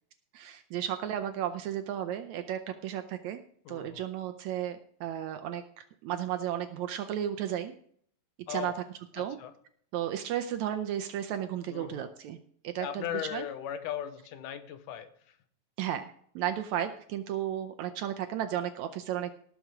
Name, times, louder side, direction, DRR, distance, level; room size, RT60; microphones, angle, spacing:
voice 1, 0.3-3.4 3.7-7.7 8.5-8.7 9.1-9.4 9.9-12.4 12.6-13.0 13.3-13.5 15.8-16.0 16.4-19.3, right 10 dB, 75° right, 7 dB, 1.8 m, -34 dB
voice 2, 3.7-4.0 8.5-8.8 9.2-9.5 11.7-12.1 12.8-15.4, left 10 dB, 80° left, 11 dB, 2.4 m, -38 dB
18.0 x 6.1 x 4.9 m, 0.62 s
omnidirectional pair, 3.8 m